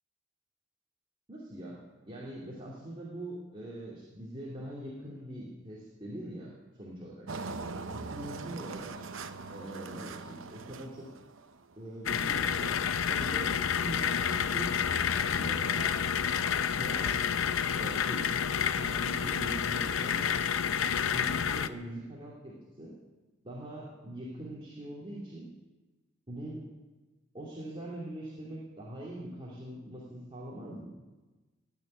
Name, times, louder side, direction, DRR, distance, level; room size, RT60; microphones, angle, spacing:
voice 1, 1.3-1.8 2.1-7.3 7.9-8.9 9.5-11.1 11.7-12.8 13.1-14.9 15.1-16.1 16.8-17.2 17.7-20.3 21.0-22.9 23.4-25.5 26.3-26.6 27.3-30.9, right 1 dB, 25° right, -5 dB, 2.8 m, -42 dB
Engine, 7.3-11.8, right 3 dB, 80° right, 0.8 m, -41 dB
sound 1, 12.1-21.7, left 7 dB, 90° left, 0.6 m, -29 dB
17.5 x 6.9 x 9.8 m, 1.2 s
head